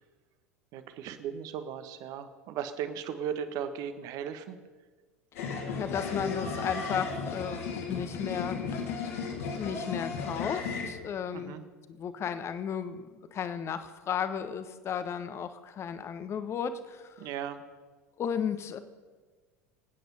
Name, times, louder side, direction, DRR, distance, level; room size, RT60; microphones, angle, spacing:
voice 1, 0.7-4.6 11.3-11.6 17.2-17.6, right 8 dB, 50° right, 10 dB, 1.4 m, -37 dB
voice 2, 5.3-8.6 9.6-11.6 12.0-17.3 18.2-18.8, left 7 dB, 35° left, 11 dB, 1.3 m, -34 dB
sound 1, 5.4-10.9, left 5 dB, 65° left, 3.2 m, -35 dB
26.0 x 9.3 x 5.6 m, 1.4 s
figure-of-eight pair, 75°, 8 cm